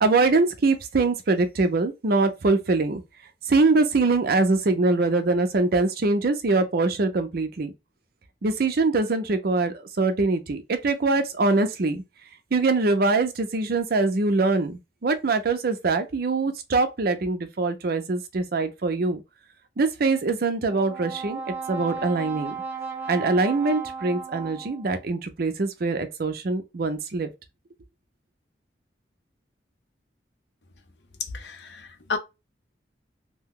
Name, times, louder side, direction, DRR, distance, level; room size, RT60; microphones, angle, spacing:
voice 1, 0.0-3.0 3.5-7.7 8.4-12.0 12.5-19.2 19.8-22.5 23.1-27.3, right 3 dB, 60° right, 0.5 m, -23 dB
Brass instrument, 20.6-25.0, right 5 dB, 15° right, 0.6 m, -35 dB
voice 2, 31.2-32.2, left 4 dB, 70° left, 0.6 m, -32 dB
2.7 x 2.2 x 3.6 m
head